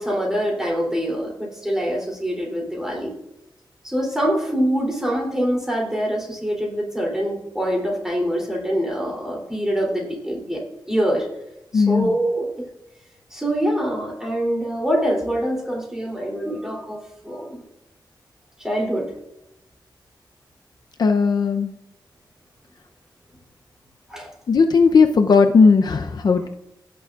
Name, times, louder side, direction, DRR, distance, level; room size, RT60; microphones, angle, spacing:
voice 1, 0.0-3.1 3.8-10.6 10.9-11.3 11.7-12.5 13.3-17.6 18.6-19.1 24.1-24.3 26.4-26.5, equal, 5° right, -2 dB, 3.1 m, -24 dB
voice 2, 11.7-12.2 21.0-21.7 24.5-26.5, left 5 dB, 55° left, 5 dB, 0.6 m, -16 dB
16.5 x 6.9 x 2.4 m, 0.88 s
wide cardioid pair, 150°, 8 cm